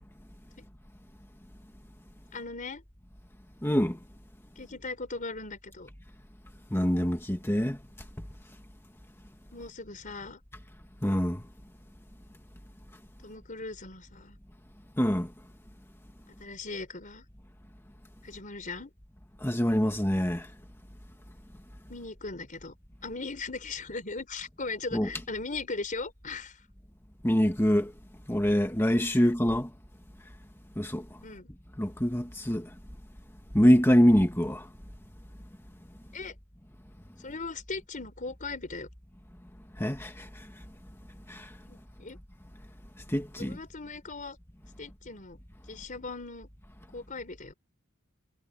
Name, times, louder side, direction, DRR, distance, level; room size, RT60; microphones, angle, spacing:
voice 1, 2.3-2.8 4.6-5.9 9.5-10.4 13.2-14.4 16.4-17.2 18.2-18.9 21.9-22.7 23.0-26.6 31.2-31.5 36.1-36.3 37.2-38.9 41.7-42.2 43.4-44.4 44.8-45.4 45.7-46.5 46.9-47.5, left 3 dB, 40° left, 4.2 m, -38 dB
voice 2, 3.6-4.0 6.7-7.8 11.0-11.4 15.0-15.3 19.4-20.5 24.9-25.1 27.2-27.9 28.3-29.7 30.8-31.0 31.8-32.7 33.5-34.7 39.8-40.3 41.3-41.5 43.1-43.6, equal, 10° left, 1.8 m, -24 dB
head